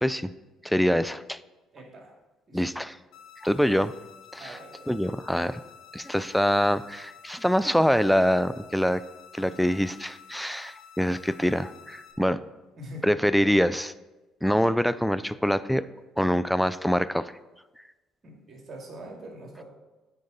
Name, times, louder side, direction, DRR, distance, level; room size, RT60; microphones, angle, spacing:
voice 1, 0.0-0.3 0.6-1.4 2.5-2.9 3.4-3.9 4.3-4.6 4.9-5.6 5.9-9.0 9.3-12.4 13.0-13.9 14.4-15.8 16.2-17.3, equal, ahead, 15 dB, 0.3 m, -24 dB
voice 2, 1.7-2.1 2.5-2.9 4.4-5.0 12.8-13.1 18.2-19.6, right 1 dB, 45° right, 0 dB, 2.2 m, -44 dB
sound 1, 3.1-12.1, left 8 dB, 70° left, 1.0 m, -50 dB
9.6 x 4.7 x 4.0 m, 1.1 s
supercardioid pair, 85°, 0 cm